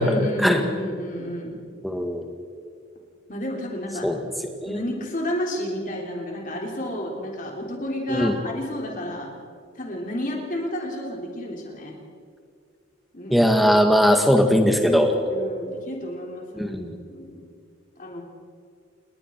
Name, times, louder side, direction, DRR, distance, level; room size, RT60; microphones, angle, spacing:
voice 1, 0.0-1.6 3.3-4.3 4.6-9.3 9.8-12.0 13.1-13.5 15.3-16.7 17.1-17.4 18.0-18.2, left 1 dB, 40° left, 0 dB, 3.6 m, -31 dB
voice 2, 1.8-2.2 4.0-4.2 4.6-4.8 8.1-8.4 13.3-15.1 16.5-17.0, equal, ahead, 4 dB, 1.8 m, -19 dB
29.0 x 21.0 x 4.7 m, 2.3 s
head